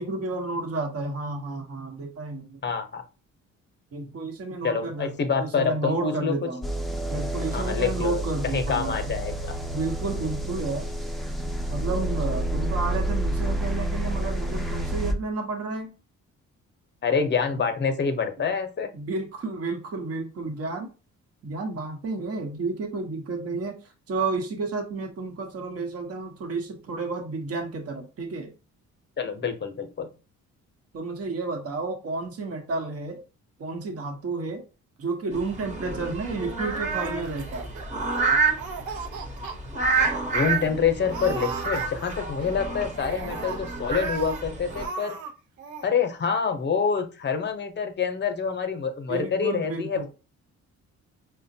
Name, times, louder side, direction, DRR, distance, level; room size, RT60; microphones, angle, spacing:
voice 1, 0.0-2.6 3.9-6.7 7.1-9.1 9.7-10.9 11.7-15.9 17.5-17.6 18.9-20.9 21.4-23.8 24.1-28.5 30.9-33.2 33.6-34.6 35.0-37.7 40.8-40.9 49.1-50.1, right 3 dB, 50° right, 1.0 m, -31 dB
voice 2, 2.6-3.0 4.6-6.3 7.5-9.6 17.0-18.9 29.2-30.1 40.3-45.2 45.8-50.1, left 6 dB, 35° left, 0.7 m, -26 dB
sound 1, 6.6-15.1, right 1 dB, ahead, 0.5 m, -29 dB
sound 2, 35.3-44.9, right 4 dB, 25° right, 1.0 m, -29 dB
Laughter, 36.9-38.2 38.5-39.6 40.0-40.1 40.3-40.7 41.1-42.4 42.9-44.4 44.7-45.3 45.6-45.9, right 6 dB, 75° right, 0.7 m, -37 dB
4.9 x 2.2 x 2.7 m
cardioid pair, 90°, 30 cm